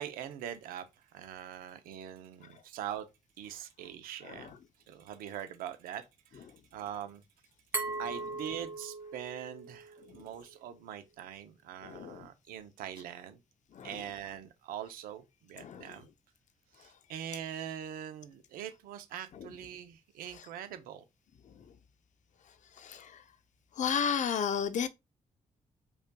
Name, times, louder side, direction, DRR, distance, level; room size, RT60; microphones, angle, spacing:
voice 1, 0.0-3.1 3.4-4.6 4.9-6.1 6.3-6.5 6.7-7.2 8.0-13.4 13.8-16.1 16.8-21.0, right 10 dB, 85° right, 0.6 m, -43 dB
Glass, 7.7-10.5, right 3 dB, 15° right, 1.8 m, -39 dB
voice 2, 11.8-12.3 13.7-13.9 15.6-16.0 22.8-23.2 23.8-24.9, left 7 dB, 55° left, 0.6 m, -33 dB
5.1 x 2.3 x 2.2 m
supercardioid pair, 60°, 15 cm